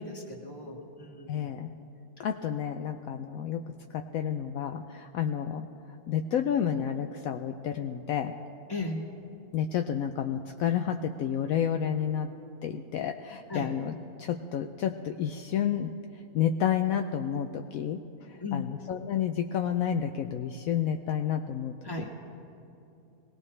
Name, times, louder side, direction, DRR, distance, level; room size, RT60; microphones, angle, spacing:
voice 1, 0.0-1.5 8.7-9.0 13.5-13.7 18.4-18.7 21.8-22.1, left 3 dB, 15° left, 0 dB, 1.6 m, -36 dB
voice 2, 1.3-1.7 2.2-3.6 3.9-5.7 6.1-8.3 9.5-12.3 12.6-13.9 14.2-15.9 16.3-18.0 18.5-21.7, left 9 dB, 70° left, 5 dB, 1.0 m, -30 dB
22.5 x 18.0 x 3.3 m, 2.8 s
omnidirectional pair, 1.6 m